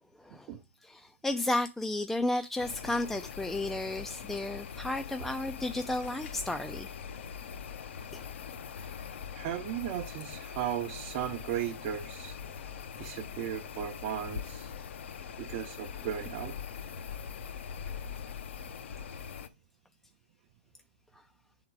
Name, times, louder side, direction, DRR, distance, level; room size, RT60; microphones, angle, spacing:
voice 1, 0.2-0.5 0.8-6.9 8.1-8.3, left 2 dB, 5° left, 0.3 m, -33 dB
sound 1, 2.6-19.5, left 7 dB, 70° left, 0.7 m, -42 dB
voice 2, 9.3-12.4 13.0-14.7 15.4-16.6, right 10 dB, 45° right, 0.7 m, -36 dB
7.2 x 3.7 x 4.7 m
hypercardioid pair, 125°, 7 cm